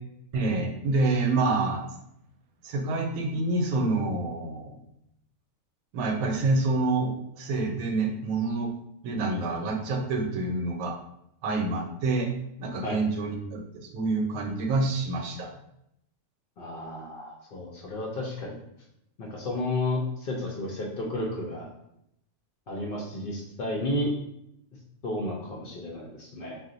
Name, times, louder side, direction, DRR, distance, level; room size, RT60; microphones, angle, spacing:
voice 1, 0.3-1.8 2.6-4.7 5.9-8.7 9.0-11.0 11.4-12.3 12.6-15.5, right 3 dB, 75° right, 3 dB, 1.0 m, -27 dB
voice 2, 16.6-18.6 19.2-21.7 22.7-24.1 25.0-26.6, left 1 dB, 65° left, -2 dB, 0.5 m, -32 dB
2.5 x 2.1 x 3.8 m, 0.78 s
omnidirectional pair, 1.6 m